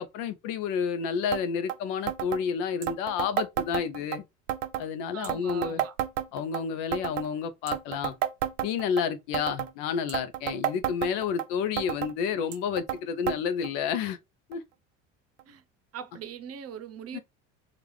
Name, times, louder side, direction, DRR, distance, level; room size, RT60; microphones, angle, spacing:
voice 1, 0.0-4.2 4.8-5.8 6.3-8.1 8.6-14.2 14.5-14.6 17.1-17.2, left 7 dB, 65° left, 0.7 m, -30 dB
sound 1, 1.3-1.4 1.7-1.8 2.1-2.4 2.8-4.2 4.5-4.9 5.2-6.6 6.9-7.3 7.7-9.0 9.3-9.7 10.1-11.5 11.8-12.1 12.5-13.0 13.3-13.4 13.6-13.7 14.5-14.6 15.4-15.5, right 12 dB, 75° right, 0.6 m, -31 dB
voice 2, 5.1-5.9 15.5-15.6 15.9-17.2, right 8 dB, 40° right, 0.7 m, -41 dB
4.6 x 2.5 x 3.2 m
hypercardioid pair, 70°, 37 cm